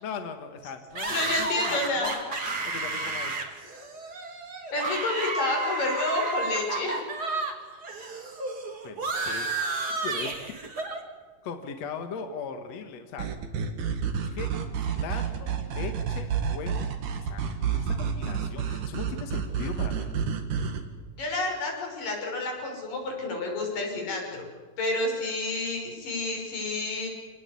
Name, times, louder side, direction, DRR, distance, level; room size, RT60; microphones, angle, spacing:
voice 1, 0.0-1.1 1.4-2.4 2.7-3.5 8.8-9.5 9.8-10.6 11.4-13.3 14.2-14.5 14.8-16.9 17.2-20.1, left 5 dB, 55° left, 7 dB, 2.5 m, -39 dB
sound 1, 1.0-7.5 7.8-11.0, right 3 dB, 30° right, 2.9 m, -32 dB
voice 2, 1.1-2.1 4.7-7.0 21.2-24.5 24.8-27.1, left 2 dB, 75° left, 0 dB, 7.6 m, -29 dB
sound 2, 13.2-20.8, right 7 dB, 70° right, 3.5 m, -30 dB
27.5 x 19.5 x 8.6 m, 1.5 s
omnidirectional pair, 3.9 m